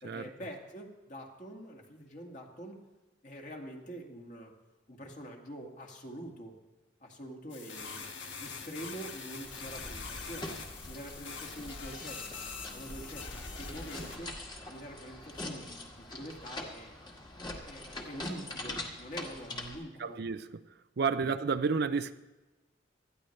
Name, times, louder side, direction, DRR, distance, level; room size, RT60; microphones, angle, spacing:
voice 1, 0.0-2.8 3.2-4.5 4.9-6.6 7.0-8.0 8.4-10.5 10.9-12.4 12.7-14.3 14.7-16.9 17.6-20.2, equal, 45° left, 2.0 m, -45 dB
sound 1, 7.5-14.2, left 5 dB, 80° left, 1.7 m, -44 dB
sound 2, 9.4-19.8, left 1 dB, 25° left, 1.7 m, -43 dB
voice 2, 20.0-20.5 21.0-22.1, right 5 dB, 60° right, 0.5 m, -30 dB
19.0 x 13.5 x 3.2 m
head